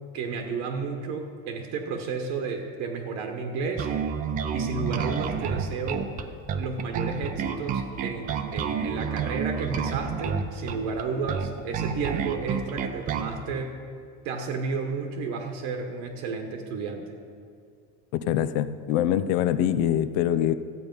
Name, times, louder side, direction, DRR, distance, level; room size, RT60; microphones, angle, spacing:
voice 1, 0.1-3.9 4.5-6.1 6.5-13.8 14.2-17.1, right 4 dB, 50° right, 4 dB, 1.1 m, -32 dB
Bass guitar, 3.8-13.4, right 6 dB, 25° right, 0.5 m, -29 dB
voice 2, 18.1-20.5, left 11 dB, 60° left, 13 dB, 0.6 m, -24 dB
13.5 x 8.5 x 5.3 m, 2.3 s
cardioid pair, 165°, 35 cm